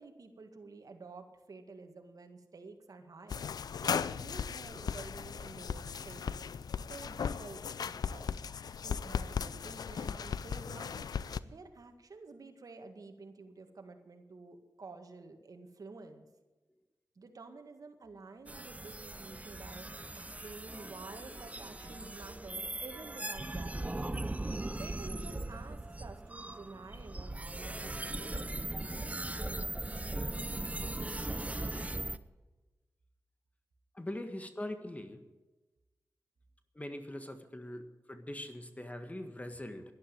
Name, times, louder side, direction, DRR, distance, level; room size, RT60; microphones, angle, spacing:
voice 1, 0.0-3.5 3.8-6.3 6.9-8.4 8.8-11.1 11.4-16.3 17.2-24.1 24.8-29.8, right 3 dB, 65° right, 5 dB, 1.9 m, -50 dB
sound 1, 3.3-11.4, left 7 dB, 80° left, 0.5 m, -37 dB
sound 2, 18.5-32.2, right 2 dB, 20° right, 0.8 m, -39 dB
voice 2, 33.9-35.2 36.7-39.8, left 1 dB, 20° left, 8 dB, 1.7 m, -42 dB
11.5 x 11.5 x 8.8 m, 1.2 s
cardioid pair, 45°, 7 cm